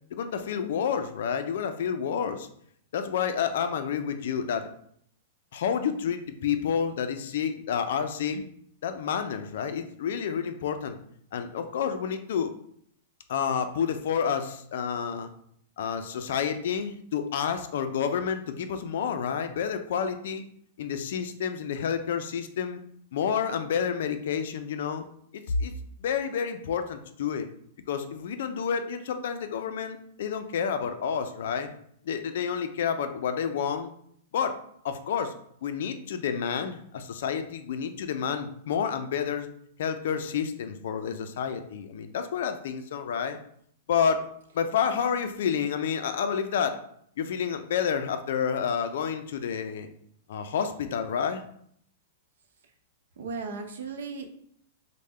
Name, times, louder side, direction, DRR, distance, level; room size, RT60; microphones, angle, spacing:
voice 1, 0.1-2.5 2.9-4.7 5.5-8.4 8.8-11.0 11.3-12.5 13.3-15.3 15.8-20.4 20.8-22.8 23.1-25.1 25.3-25.7 26.0-27.5 27.9-31.7 32.0-33.9 34.3-34.6 34.8-35.3 35.6-39.5 39.8-43.4 43.9-44.3 44.5-46.8 47.2-49.9 50.3-51.4, left 7 dB, 65° left, 8 dB, 0.4 m, -29 dB
voice 2, 53.2-54.3, right 4 dB, 90° right, 5 dB, 0.5 m, -37 dB
3.5 x 2.1 x 3.2 m, 0.66 s
supercardioid pair, 165°, 0 cm